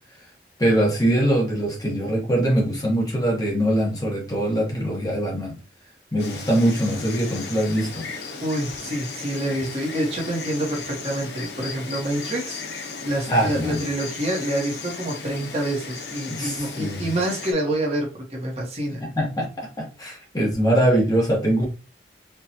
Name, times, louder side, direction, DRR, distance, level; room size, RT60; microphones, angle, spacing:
voice 1, 0.6-5.6 6.1-8.1 13.3-13.8 16.3-17.0 19.0-21.7, right 1 dB, 20° left, -1 dB, 1.0 m, -22 dB
Insect, 6.2-17.5, left 4 dB, 70° left, 0.7 m, -36 dB
voice 2, 8.4-19.0, right 1 dB, 35° right, 0 dB, 1.0 m, -27 dB
4.4 x 2.3 x 2.8 m, 0.32 s
head